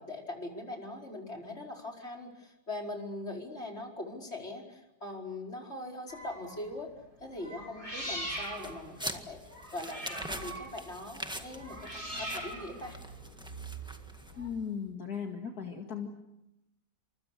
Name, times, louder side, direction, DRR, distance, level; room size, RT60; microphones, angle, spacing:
voice 1, 0.0-6.9 7.2-9.4 9.7-13.0, left 1 dB, 40° left, 1 dB, 5.3 m, -41 dB
sound 1, 6.1-6.7 7.4-14.5, right 1 dB, 55° right, 8.3 m, -42 dB
sound 2, 8.3-14.5, equal, 5° right, 1.6 m, -44 dB
voice 2, 14.4-16.1, left 7 dB, 65° left, 3 dB, 2.5 m, -37 dB
29.0 x 27.0 x 6.7 m, 0.89 s
omnidirectional pair, 1.7 m